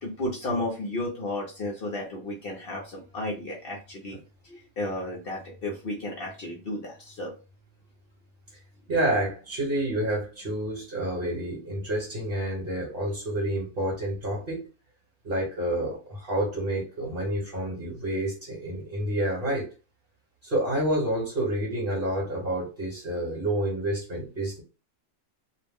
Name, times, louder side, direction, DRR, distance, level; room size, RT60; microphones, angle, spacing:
voice 1, 0.0-4.2 4.4-7.3, left 1 dB, 55° left, 0 dB, 0.7 m, -33 dB
voice 2, 8.9-14.7 15.2-19.7 20.4-24.6, right 1 dB, 45° right, -4 dB, 1.1 m, -29 dB
2.5 x 2.0 x 3.4 m, 0.32 s
omnidirectional pair, 1.4 m